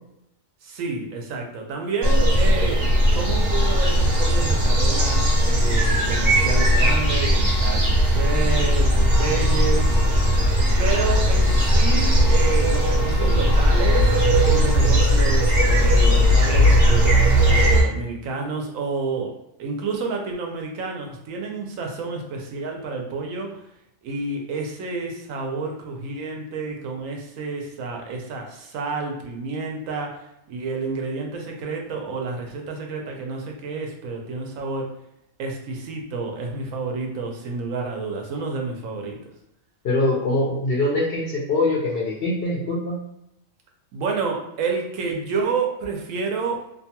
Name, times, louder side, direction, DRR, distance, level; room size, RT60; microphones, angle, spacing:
voice 1, 0.6-10.0 10.8-23.6 24.0-34.9 35.4-39.2 43.9-46.7, right 4 dB, 80° right, 2 dB, 1.0 m, -29 dB
sound 1, 2.0-17.8, equal, 55° right, 0.9 m, -18 dB
voice 2, 39.8-43.0, left 2 dB, 60° left, -3 dB, 0.6 m, -23 dB
2.7 x 2.3 x 2.8 m, 0.81 s
omnidirectional pair, 1.4 m